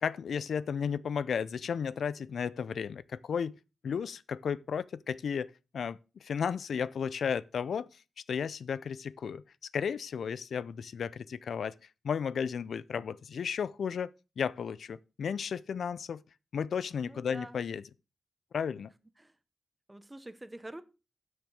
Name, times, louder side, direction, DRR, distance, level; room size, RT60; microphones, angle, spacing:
voice 1, 0.0-3.6 3.8-7.9 8.3-9.4 9.7-11.7 12.0-16.2 16.5-17.8 18.5-18.9, left 7 dB, 80° left, 0.5 m, -34 dB
voice 2, 17.0-17.6 19.2-19.3 19.9-20.8, right 1 dB, 10° right, 0.7 m, -46 dB
8.5 x 6.5 x 6.1 m
wide cardioid pair, 165°, 0 cm